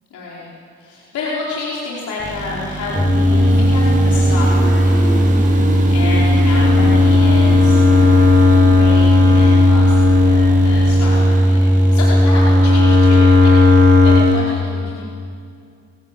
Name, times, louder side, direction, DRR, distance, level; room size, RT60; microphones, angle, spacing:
voice 1, 0.1-0.4 0.8-4.9 5.9-8.2 8.7-13.5 14.0-15.0, left 3 dB, 70° left, -6 dB, 5.2 m, -29 dB
sound 1, 2.2-14.4, right 2 dB, 25° right, 7.0 m, -27 dB
sound 2, 2.9-14.2, left 1 dB, 15° left, 7.7 m, -13 dB
29.5 x 18.0 x 8.6 m, 2.3 s
cardioid pair, 90°, 30 cm